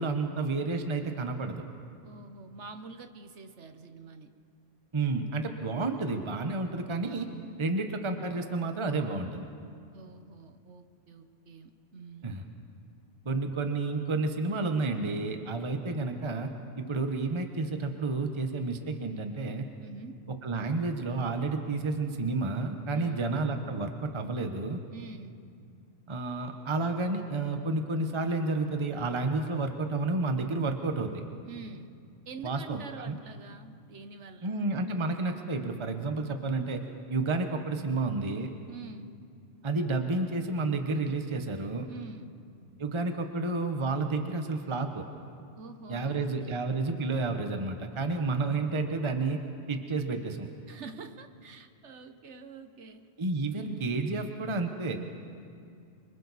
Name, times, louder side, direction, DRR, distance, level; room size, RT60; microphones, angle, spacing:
voice 1, 0.0-1.6 4.9-7.3 7.6-9.4 12.2-12.4 13.2-16.5 16.8-19.7 20.4-24.8 26.1-31.2 32.4-33.2 34.4-36.8 37.1-38.5 39.6-41.9 42.8-45.0 45.9-49.4 49.7-50.5 53.2-55.0, right 3 dB, 25° right, 5 dB, 1.0 m, -30 dB
voice 2, 2.0-4.3 9.9-12.4 19.8-20.2 22.9-23.3 24.9-25.3 31.4-31.9 32.3-34.6 38.7-39.1 41.9-42.4 45.6-46.6 50.7-53.1, right 4 dB, 75° right, 8 dB, 1.4 m, -46 dB
26.0 x 25.0 x 4.2 m, 2.4 s
omnidirectional pair, 1.2 m